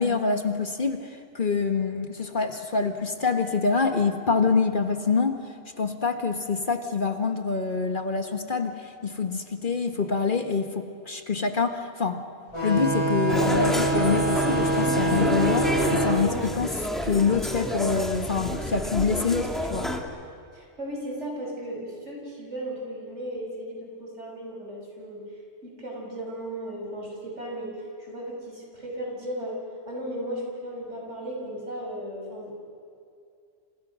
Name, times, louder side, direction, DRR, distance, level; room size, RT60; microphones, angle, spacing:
voice 1, 0.0-5.4 5.8-12.2 12.6-19.9, left 4 dB, 45° left, 6 dB, 1.6 m, -26 dB
sound 1, 12.5-17.7, right 2 dB, 25° left, 4.7 m, -26 dB
sound 2, 13.3-20.0, equal, ahead, 2.2 m, -29 dB
voice 2, 20.5-25.2 25.6-32.5, right 1 dB, 70° right, -1 dB, 6.2 m, -36 dB
28.5 x 27.5 x 6.3 m, 2.4 s
omnidirectional pair, 1.3 m